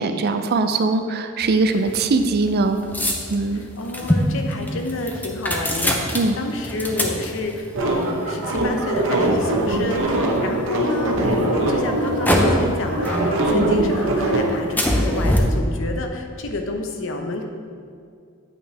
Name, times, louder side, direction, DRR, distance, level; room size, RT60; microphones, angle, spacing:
voice 1, 0.0-2.8 3.3-3.6 6.1-6.4, right 3 dB, 50° right, 8 dB, 0.4 m, -21 dB
sound 1, 1.4-10.6 11.1-12.8 13.0-13.8 14.1-15.4, left 1 dB, 10° left, 0.6 m, -26 dB
voice 2, 3.5-17.4, left 2 dB, 65° left, 4 dB, 0.7 m, -29 dB
sound 2, 7.7-14.5, right 2 dB, 65° right, 0.9 m, -21 dB
8.7 x 5.4 x 3.3 m, 2.3 s
head